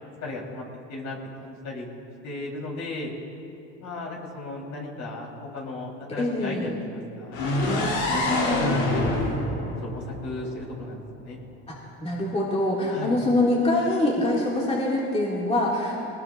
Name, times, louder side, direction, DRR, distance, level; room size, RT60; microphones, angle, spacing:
voice 1, 0.2-0.6 0.9-1.9 2.2-3.1 3.8-9.2 9.8-11.4 12.9-13.2, left 2 dB, 50° left, -2 dB, 4.6 m, -36 dB
voice 2, 6.1-6.8 8.1-8.8 11.7-16.0, left 1 dB, 15° left, -5 dB, 2.7 m, -25 dB
sound 1, 7.3-11.2, left 1 dB, 70° left, 3.4 m, -26 dB
21.0 x 20.0 x 2.8 m, 2.7 s
supercardioid pair, 95°, 36 cm